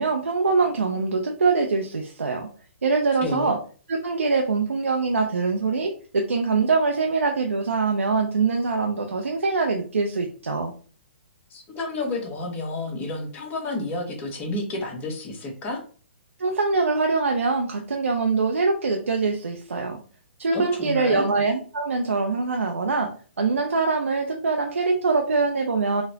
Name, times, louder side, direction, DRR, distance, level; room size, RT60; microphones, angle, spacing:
voice 1, 0.0-2.5 2.8-3.6 3.9-10.7 16.4-20.0 20.4-23.1 23.4-26.0, right 4 dB, 85° right, 3 dB, 0.5 m, -23 dB
voice 2, 11.5-15.8 20.5-21.3, left 2 dB, 25° left, 0 dB, 1.0 m, -30 dB
4.1 x 2.0 x 2.7 m, 0.40 s
hypercardioid pair, 135°, 7 cm